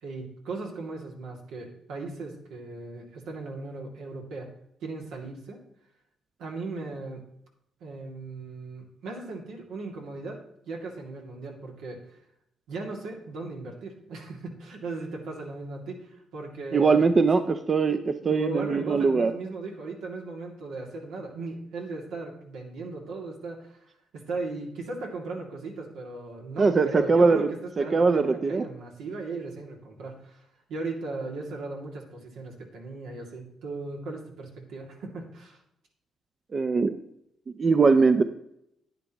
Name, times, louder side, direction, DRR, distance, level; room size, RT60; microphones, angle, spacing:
voice 1, 0.0-4.5 4.8-5.6 6.4-7.2 7.8-10.4 10.7-12.2 12.7-17.4 17.9-35.6, right 3 dB, 85° right, 0 dB, 2.4 m, -37 dB
voice 2, 16.7-19.3 26.6-27.5 27.8-28.6 36.5-36.9 37.6-38.2, right 4 dB, 35° right, 9 dB, 0.6 m, -21 dB
10.5 x 10.0 x 3.0 m, 0.77 s
cardioid pair, 90°, 0 cm